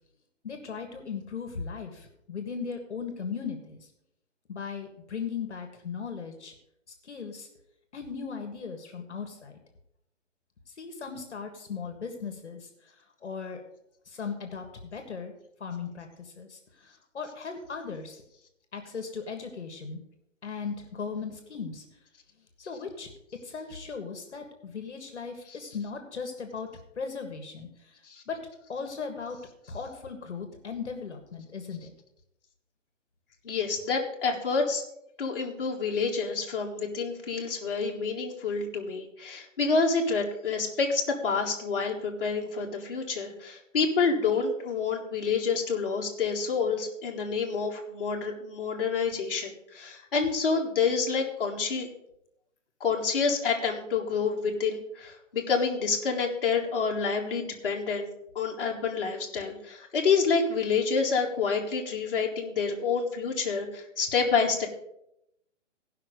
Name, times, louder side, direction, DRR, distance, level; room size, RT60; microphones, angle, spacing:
voice 1, 0.4-3.8 4.5-6.5 7.0-7.5 7.9-9.6 10.8-12.7 13.2-13.6 14.1-14.6 14.9-15.3 15.6-18.2 18.7-20.0 20.4-21.8 22.6-23.1 23.4-26.7 26.9-27.9 28.3-28.4 28.7-29.4 29.7-31.9, left 5 dB, 60° left, 5 dB, 1.7 m, -37 dB
voice 2, 33.4-34.8 35.2-51.9 52.8-58.1 58.3-64.7, left 5 dB, 45° left, -2 dB, 1.7 m, -28 dB
15.5 x 5.8 x 5.1 m, 0.80 s
hypercardioid pair, 180°, 38 cm